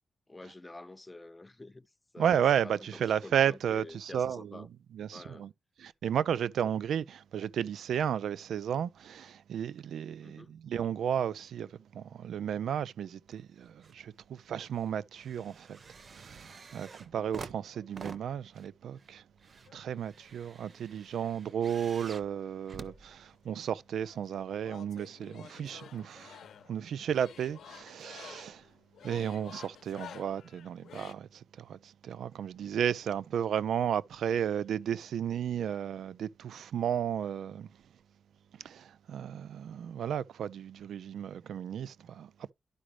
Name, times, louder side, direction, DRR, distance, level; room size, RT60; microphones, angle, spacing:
voice 1, 0.3-1.9 2.1-4.7 5.1-5.5 10.2-10.6 17.1-17.4, left 2 dB, 10° left, 0.4 m, -49 dB
voice 2, 2.2-4.7 4.9-5.5 5.8-15.8 16.1-19.2 19.7-26.4 26.7-28.6 29.0-37.7 38.6-42.3, right 9 dB, 80° right, 0.4 m, -33 dB
sound 1, 13.3-14.0 14.3-23.7 24.5-24.6, right 4 dB, 40° right, 0.7 m, -49 dB
sound 2, 19.7-20.5 21.3-22.5 22.8-31.1, left 8 dB, 75° left, 0.7 m, -52 dB
11.5 x 4.9 x 3.2 m
wide cardioid pair, 155°, 0 cm